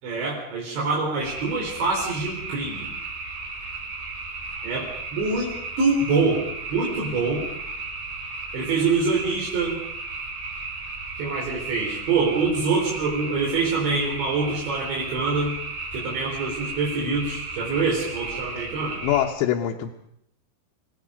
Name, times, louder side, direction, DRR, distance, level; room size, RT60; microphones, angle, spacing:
voice 1, 0.0-2.9 4.6-6.4 6.7-7.4 8.5-9.8 11.2-15.6 15.9-19.0, right 4 dB, 80° right, -4 dB, 6.3 m, -25 dB
sound 1, 1.2-19.2, right 3 dB, 60° right, 6.8 m, -35 dB
voice 2, 19.0-19.9, left 11 dB, 90° left, 0 dB, 3.4 m, -23 dB
28.5 x 18.0 x 5.1 m, 0.74 s
omnidirectional pair, 5.1 m